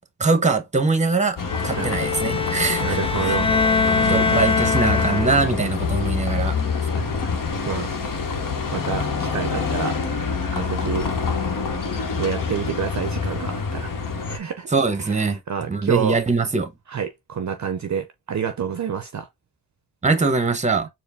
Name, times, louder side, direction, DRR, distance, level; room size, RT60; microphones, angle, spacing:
voice 1, 0.2-1.4 1.6-3.0 3.2-3.4 3.9-6.6 14.7-16.7 20.0-20.9, right 4 dB, 20° right, 0.8 m, -22 dB
Bus, 1.4-14.4, left 5 dB, 55° left, 0.9 m, -26 dB
Bowed string instrument, 1.5-5.6, left 4 dB, 15° left, 0.3 m, -23 dB
voice 2, 1.8-2.1 2.8-3.5 4.0-4.4 6.9-7.4 7.7-7.9 8.7-10.0 10.5-11.1 12.2-13.9 14.3-14.7 15.0-16.2 16.9-19.3, right 7 dB, 45° right, 0.5 m, -28 dB
4.4 x 2.0 x 3.5 m
cardioid pair, 70°, 39 cm